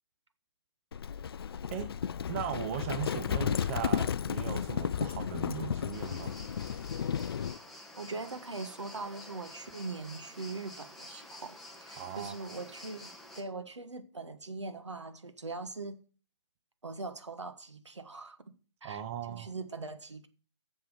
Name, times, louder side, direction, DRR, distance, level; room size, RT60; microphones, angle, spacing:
Livestock farm animals working animals, 0.9-7.6, left 8 dB, 55° left, 0.4 m, -33 dB
voice 1, 2.3-6.4 12.0-12.5 18.8-19.5, right 9 dB, 30° right, 0.8 m, -38 dB
sound 1, 5.9-13.4, left 1 dB, ahead, 1.3 m, -50 dB
voice 2, 7.9-13.1 13.3-16.0 16.8-18.4 18.8-19.0 19.3-20.3, right 3 dB, 80° right, 1.5 m, -41 dB
7.5 x 7.5 x 6.7 m
figure-of-eight pair, 135°, 15 cm